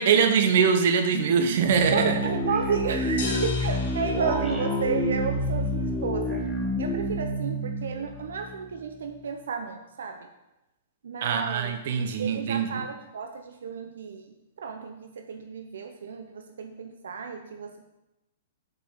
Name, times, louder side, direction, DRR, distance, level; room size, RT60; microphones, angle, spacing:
voice 1, 0.0-2.2 11.2-12.8, right 6 dB, 60° right, 7 dB, 1.0 m, -23 dB
sound 1, 1.6-8.8, equal, ahead, 1.4 m, -28 dB
voice 2, 1.9-6.4 6.8-10.3 11.0-11.8 12.2-17.9, right 5 dB, 85° right, 5 dB, 0.8 m, -33 dB
sound 2, 3.2-5.2, left 5 dB, 65° left, 3.0 m, -35 dB
6.8 x 5.2 x 6.6 m, 0.97 s
hypercardioid pair, 150°, 0 cm